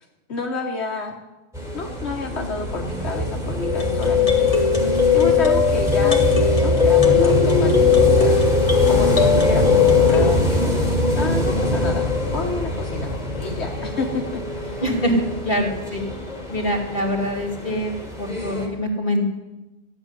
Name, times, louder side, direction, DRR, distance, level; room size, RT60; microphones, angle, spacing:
voice 1, 0.3-1.2 1.7-4.5 5.1-8.4 8.8-10.8 11.1-12.1 12.3-13.1 13.4-14.8, left 3 dB, 80° left, 1 dB, 1.4 m, -30 dB
sound 1, 1.5-18.7, equal, 5° right, 3.6 m, -24 dB
sound 2, 3.6-10.4, left 8 dB, 30° left, 1.7 m, -18 dB
voice 2, 14.8-16.0 16.5-19.3, equal, 50° left, -1 dB, 2.6 m, -24 dB
13.5 x 6.8 x 9.7 m, 1.0 s
omnidirectional pair, 1.1 m